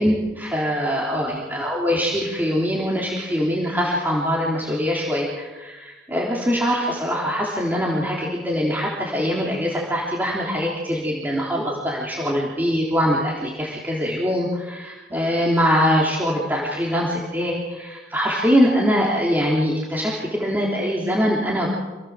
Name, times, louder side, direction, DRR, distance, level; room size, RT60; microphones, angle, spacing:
voice 1, 0.0-21.7, equal, 10° right, -4 dB, 3.6 m, -23 dB
27.5 x 17.5 x 7.5 m, 1.2 s
head